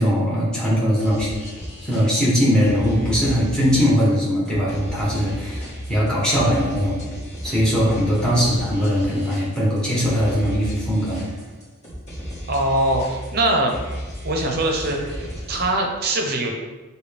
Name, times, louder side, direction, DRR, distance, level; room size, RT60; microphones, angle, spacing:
voice 1, 0.0-1.3 1.8-5.6 5.9-7.0 7.4-11.2, equal, 5° left, -6 dB, 1.1 m, -20 dB
sound 1, 1.0-15.8, equal, 30° left, 1.5 m, -34 dB
voice 2, 12.5-13.8 14.2-16.5, right 1 dB, 45° right, 1 dB, 0.7 m, -22 dB
6.6 x 2.3 x 3.4 m, 1.2 s
head